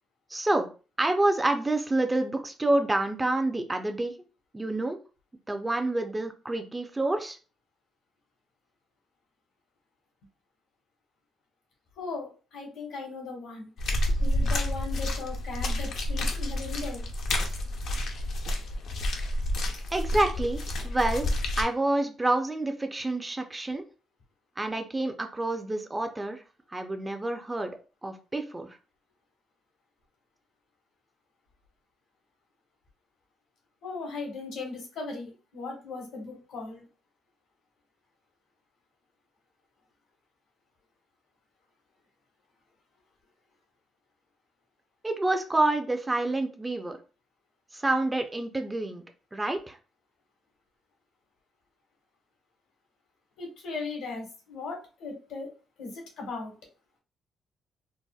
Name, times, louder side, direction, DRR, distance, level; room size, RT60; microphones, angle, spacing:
voice 1, 0.3-0.7 1.0-4.1 4.5-5.0 5.5-7.4 19.9-21.3 21.6-23.8 24.6-26.4 26.7-27.8 28.0-28.8 45.0-47.0 47.7-49.0 49.3-49.8, right 2 dB, 15° right, 6 dB, 0.5 m, -28 dB
voice 2, 12.0-13.7 14.2-17.0 33.8-36.8 53.4-55.5 55.8-55.9 56.2-56.5, left 3 dB, 85° left, 0 dB, 1.4 m, -38 dB
sound 1, 13.8-21.6, left 1 dB, 70° left, 0.6 m, -29 dB
4.0 x 2.1 x 2.3 m, 0.34 s
cardioid pair, 90°, 0 cm